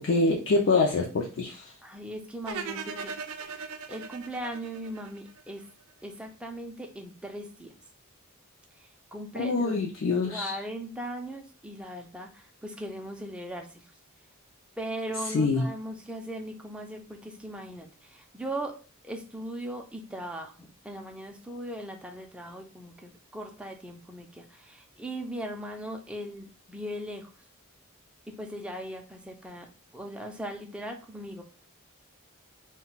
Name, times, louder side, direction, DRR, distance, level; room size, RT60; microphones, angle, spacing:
voice 1, 0.0-1.7 9.4-10.6 15.2-15.7, left 3 dB, 60° left, -1 dB, 0.4 m, -25 dB
voice 2, 1.8-3.1 3.9-5.6 6.0-7.7 9.1-9.8 10.2-13.7 14.8-18.7 19.0-27.3 28.4-31.4, right 1 dB, 5° right, 2 dB, 0.4 m, -39 dB
sound 1, 2.5-5.6, right 5 dB, 75° right, 0.4 m, -38 dB
2.2 x 2.2 x 3.8 m, 0.36 s
head